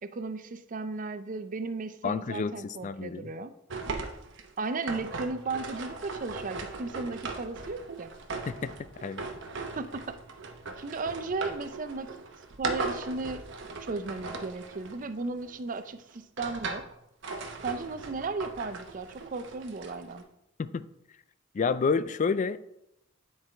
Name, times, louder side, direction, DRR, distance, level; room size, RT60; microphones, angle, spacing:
voice 1, 0.0-3.5 4.6-8.1 9.8-10.2 10.8-12.1 12.6-13.4 13.8-16.9 17.6-20.2, right 3 dB, 40° right, 0.5 m, -35 dB
voice 2, 2.0-3.3 8.5-8.7 9.0-9.3 20.6-20.8 21.5-22.6, left 5 dB, 40° left, 0.3 m, -29 dB
sound 1, 3.7-15.6 16.1-16.9 17.2-20.2, right 3 dB, 60° right, 1.0 m, -38 dB
9.8 x 4.7 x 4.4 m
head